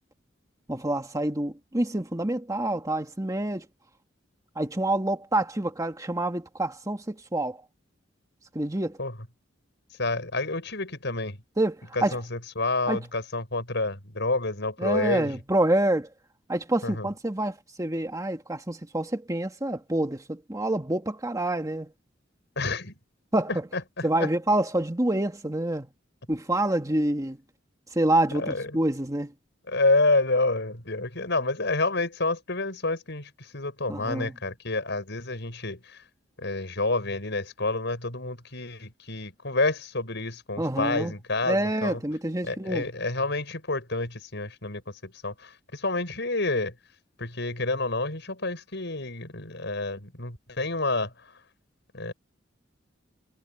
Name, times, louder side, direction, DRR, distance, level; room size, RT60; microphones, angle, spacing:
voice 1, 0.7-3.7 4.6-7.6 8.5-9.0 11.6-12.2 12.9-13.1 14.8-16.1 16.5-21.9 23.3-25.9 26.3-27.4 27.9-29.3 33.9-34.4 40.6-41.2 41.4-42.9, right 1 dB, 20° right, 1.8 m, -27 dB
voice 2, 10.0-11.4 11.9-15.4 16.8-17.1 22.6-23.0 23.7-24.3 28.3-28.7 29.7-36.0 36.4-42.0 42.4-46.7 47.2-51.1 51.9-52.1, left 2 dB, 65° left, 7.6 m, -29 dB
head